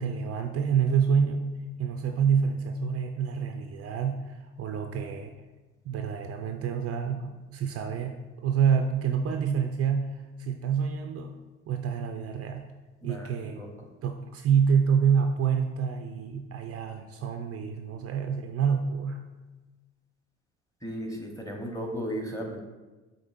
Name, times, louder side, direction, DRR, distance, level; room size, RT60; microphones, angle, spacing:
voice 1, 0.0-1.5 1.8-5.4 5.9-11.3 11.7-12.7 13.0-13.6 14.0-19.2, right 7 dB, 45° right, 5 dB, 0.4 m, -27 dB
voice 2, 13.0-13.9 20.8-22.6, equal, 10° left, 1 dB, 0.9 m, -36 dB
5.2 x 3.5 x 2.5 m, 1.2 s
hypercardioid pair, 60°, 35 cm